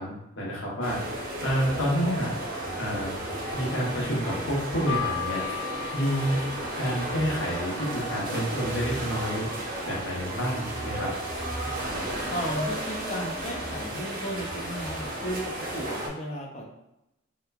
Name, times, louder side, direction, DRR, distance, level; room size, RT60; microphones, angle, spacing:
voice 1, 0.0-2.3 2.8-3.1 3.5-5.4 5.9-6.4 6.8-9.5 9.8-11.1, equal, 80° left, -5 dB, 0.9 m, -29 dB
sound 1, 0.8-16.1, right 1 dB, 45° right, 0.6 m, -33 dB
Keyboard (musical), 4.9-7.4, left 15 dB, ahead, 0.7 m, -36 dB
voice 2, 12.3-16.6, equal, 35° left, 0 dB, 0.4 m, -34 dB
2.9 x 2.1 x 2.3 m, 0.88 s
head